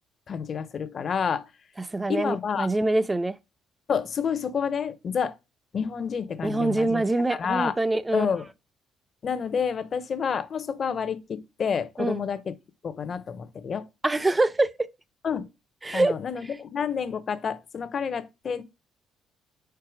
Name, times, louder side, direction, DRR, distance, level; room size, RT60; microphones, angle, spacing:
voice 1, 0.3-1.5 2.1-2.7 3.9-5.3 5.7-7.0 7.3-7.8 8.1-8.4 9.2-12.5 12.8-13.9 15.2-15.5 15.9-18.6, left 6 dB, 50° left, 0.8 m, -29 dB
voice 2, 1.9-3.4 6.4-8.3 12.0-12.2 14.0-14.7 15.8-16.2, right 2 dB, 20° right, 0.6 m, -24 dB
4.7 x 4.6 x 4.9 m
supercardioid pair, 65°, 0 cm